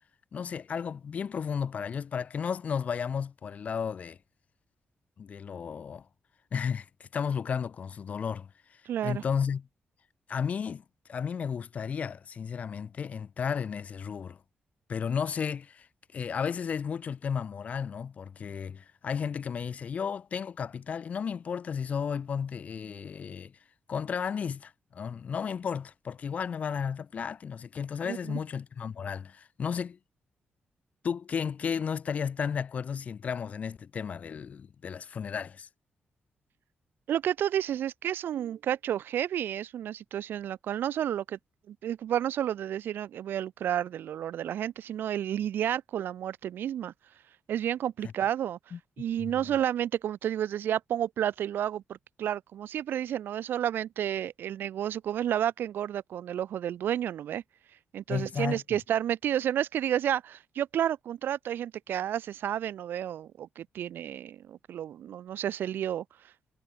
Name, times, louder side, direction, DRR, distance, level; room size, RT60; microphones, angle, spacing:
voice 1, 0.3-4.2 5.2-6.1 6.5-9.7 10.3-10.8 11.1-14.4 14.9-15.9 16.1-23.5 23.9-30.0 31.0-35.7 48.0-48.1 48.7-48.8 49.2-49.4 58.1-58.6, left 7 dB, 45° left, 1.3 m, -33 dB
voice 2, 8.9-9.2 28.0-28.4 37.1-41.4 41.7-46.9 47.5-48.6 49.0-51.8 52.2-57.4 57.9-66.0, right 10 dB, 85° right, 2.4 m, -31 dB
wide cardioid pair, 170°, 3 cm